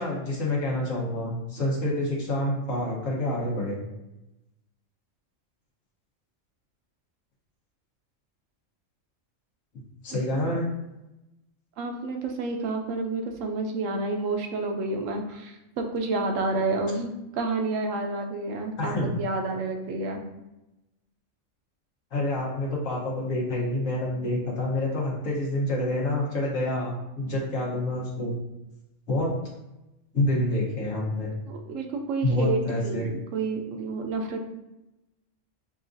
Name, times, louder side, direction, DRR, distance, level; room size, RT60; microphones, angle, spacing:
voice 1, 0.0-3.8 10.0-10.7 18.8-19.2 22.1-28.4 29.1-29.3 30.1-31.3 32.2-33.1, left 1 dB, 85° left, -4 dB, 1.6 m, -27 dB
voice 2, 11.8-20.2 31.5-34.5, right 3 dB, 80° right, 4 dB, 1.0 m, -29 dB
6.7 x 2.4 x 2.6 m, 0.96 s
omnidirectional pair, 1.3 m